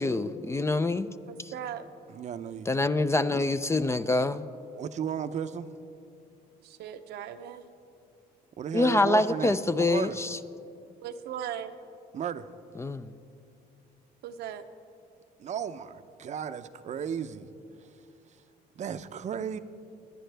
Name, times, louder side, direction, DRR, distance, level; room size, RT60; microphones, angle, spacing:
voice 1, 0.0-1.1 1.4-1.5 2.7-4.5 8.7-10.4 12.8-13.1, left 2 dB, 15° left, 12 dB, 0.4 m, -26 dB
voice 2, 1.3-1.9 6.6-7.6 11.0-11.7 14.2-14.7, right 9 dB, 75° right, 8 dB, 0.8 m, -38 dB
voice 3, 2.1-2.7 3.3-3.4 4.8-5.7 8.6-10.2 12.1-12.5 15.4-17.5 18.8-19.6, right 8 dB, 45° right, 11 dB, 0.6 m, -34 dB
25.5 x 10.5 x 3.4 m, 2.6 s
cardioid pair, 110°, 17 cm